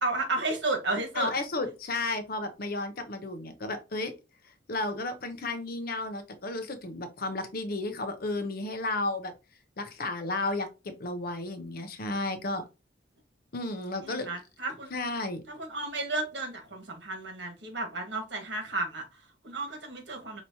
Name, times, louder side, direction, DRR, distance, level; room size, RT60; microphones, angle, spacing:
voice 1, 0.0-1.3 14.0-14.9 15.5-20.4, right 2 dB, 65° right, 1.5 m, -33 dB
voice 2, 1.2-4.1 4.7-9.3 9.8-12.6 13.5-14.3 14.9-15.4, left 2 dB, 55° left, 0.7 m, -33 dB
5.5 x 3.0 x 2.7 m
head